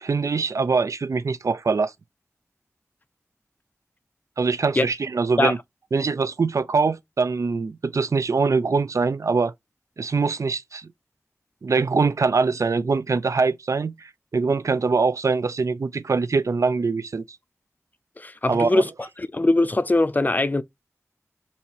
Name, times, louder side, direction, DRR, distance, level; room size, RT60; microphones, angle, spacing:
voice 1, 0.0-1.9 4.4-5.6 5.9-9.5 10.0-10.9 11.6-17.2 18.5-18.8, right 4 dB, 70° right, 0.3 m, -23 dB
voice 2, 18.2-18.9 19.2-20.6, left 2 dB, 30° left, 0.4 m, -21 dB
4.2 x 2.7 x 2.8 m
wide cardioid pair, 50°, 6 cm